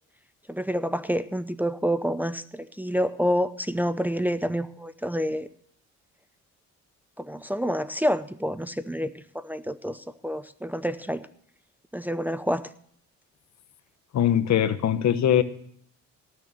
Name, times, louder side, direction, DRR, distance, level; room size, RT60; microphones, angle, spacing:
voice 1, 0.5-5.5 7.2-11.3 11.9-12.6, equal, 5° right, 11 dB, 0.6 m, -28 dB
voice 2, 14.1-15.4, left 10 dB, 65° left, 12 dB, 1.1 m, -21 dB
18.0 x 6.7 x 6.4 m, 0.64 s
cardioid pair, 90°, 30 cm